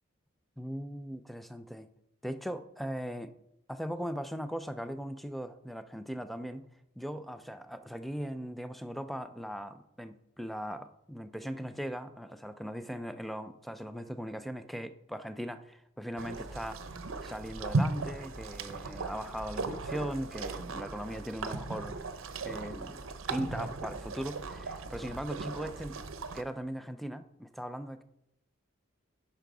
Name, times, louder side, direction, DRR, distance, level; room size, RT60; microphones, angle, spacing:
voice 1, 0.6-1.9 2.2-3.3 3.7-6.7 7.0-16.8 17.2-22.0 22.4-23.0 23.3-26.0 26.3-28.0, equal, ahead, 11 dB, 0.4 m, -39 dB
sound 1, 16.2-26.4, right 3 dB, 90° right, 0.7 m, -37 dB
9.1 x 5.7 x 4.8 m, 0.80 s
head